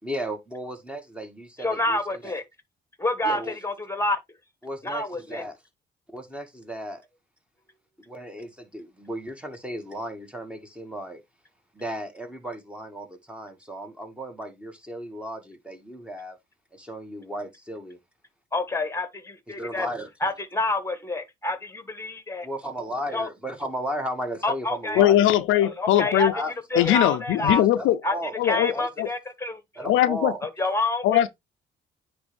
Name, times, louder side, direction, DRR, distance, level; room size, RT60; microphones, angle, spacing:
voice 1, 0.0-2.3 3.2-3.6 4.6-5.6 6.1-7.0 8.1-11.2 11.7-16.4 16.7-18.0 19.5-20.1 22.4-25.2 26.3-27.0 27.4-29.1 29.8-30.4, equal, 5° right, 1.8 m, -35 dB
voice 2, 1.6-2.4 3.0-4.2 4.8-5.4 18.5-19.9 20.2-22.5 23.1-23.3 24.4-25.0 25.6-26.3 26.7-27.6 28.0-28.1 28.4-29.6 30.4-31.3, left 2 dB, 15° left, 1.5 m, -28 dB
voice 3, 25.0-26.3 26.8-28.0 28.4-29.1 29.8-30.3 31.0-31.3, left 12 dB, 90° left, 0.6 m, -20 dB
9.5 x 3.4 x 3.4 m
cardioid pair, 90°, 20 cm